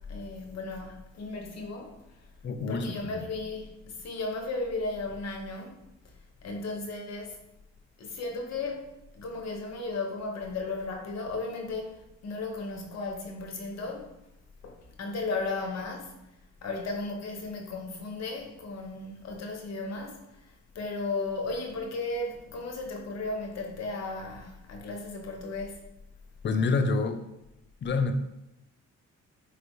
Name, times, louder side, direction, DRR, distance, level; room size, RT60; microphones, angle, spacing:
voice 1, 0.1-2.2 2.7-6.1 6.4-7.4 8.0-8.9 9.1-14.1 14.6-16.1 16.6-25.8, left 3 dB, 60° left, 2 dB, 0.8 m, -35 dB
voice 2, 2.4-3.2 26.4-27.2 27.8-28.1, left 4 dB, 40° left, 7 dB, 0.5 m, -27 dB
4.3 x 3.2 x 2.6 m, 0.88 s
cardioid pair, 90°, 30 cm